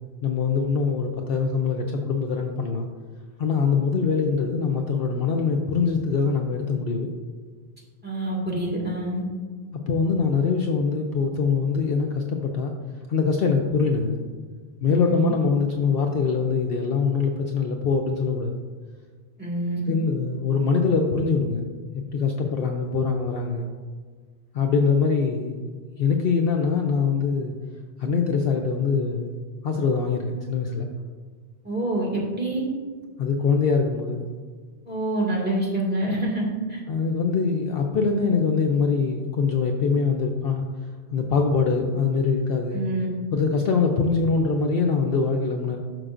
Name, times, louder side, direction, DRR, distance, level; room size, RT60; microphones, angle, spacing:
voice 1, 0.2-2.9 3.4-7.1 9.9-12.7 13.1-14.2 14.8-18.6 19.9-21.7 21.9-23.7 24.5-25.6 26.0-27.5 28.0-29.3 29.6-30.9 33.2-34.3 36.9-40.7 41.1-42.8 43.3-45.8, left 5 dB, 60° left, 3 dB, 0.8 m, -23 dB
voice 2, 8.0-9.2 14.9-15.3 19.4-19.8 31.6-32.7 34.9-36.8 42.7-43.1, right 1 dB, 10° right, -4 dB, 1.9 m, -26 dB
11.0 x 6.3 x 2.5 m, 1.5 s
omnidirectional pair, 1.2 m